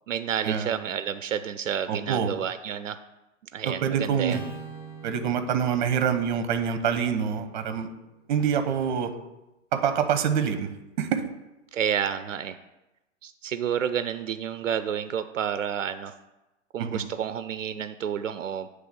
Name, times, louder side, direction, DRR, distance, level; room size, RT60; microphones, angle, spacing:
voice 1, 0.1-3.0 3.5-4.4 11.7-12.6 13.2-16.2 16.7-18.7, right 8 dB, 75° right, 12 dB, 0.6 m, -30 dB
voice 2, 1.9-2.3 3.7-4.4 5.0-7.9 8.3-9.1 9.7-10.7 11.0-11.2 16.8-17.1, right 7 dB, 40° right, 9 dB, 0.9 m, -26 dB
Acoustic guitar / Strum, 4.3-8.7, right 3 dB, 40° left, 2.2 m, -45 dB
9.1 x 3.3 x 6.8 m, 0.98 s
hypercardioid pair, 135°, 38 cm